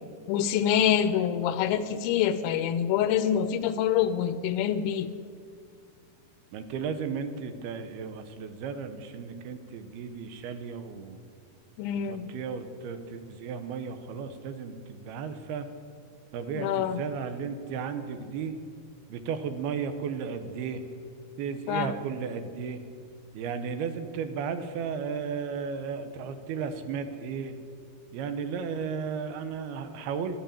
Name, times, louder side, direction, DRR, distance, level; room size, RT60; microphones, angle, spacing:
voice 1, 0.3-5.1 11.8-12.3 16.5-17.0 21.7-21.9, left 9 dB, 80° left, 12 dB, 2.3 m, -26 dB
voice 2, 6.5-11.2 12.0-15.7 16.3-18.5 19.1-20.8 21.4-22.8 23.3-27.6 28.1-30.4, right 6 dB, 80° right, 9 dB, 2.9 m, -34 dB
12.5 x 11.5 x 8.9 m, 2.2 s
omnidirectional pair, 4.4 m